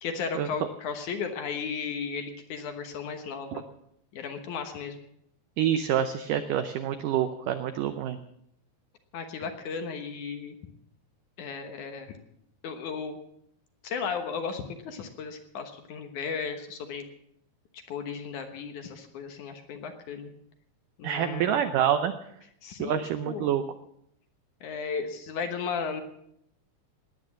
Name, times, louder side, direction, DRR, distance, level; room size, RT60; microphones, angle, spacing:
voice 1, 0.0-3.6 4.1-5.0 9.1-10.5 11.4-12.2 12.6-13.2 13.8-17.0 17.9-20.3 21.0-21.6 22.6-23.5 24.6-26.0, left 5 dB, 65° left, 6 dB, 2.2 m, -35 dB
voice 2, 5.6-8.2 21.0-22.1 22.8-23.6, right 10 dB, 80° right, 10 dB, 1.9 m, -27 dB
19.0 x 9.2 x 7.3 m, 0.74 s
omnidirectional pair, 4.7 m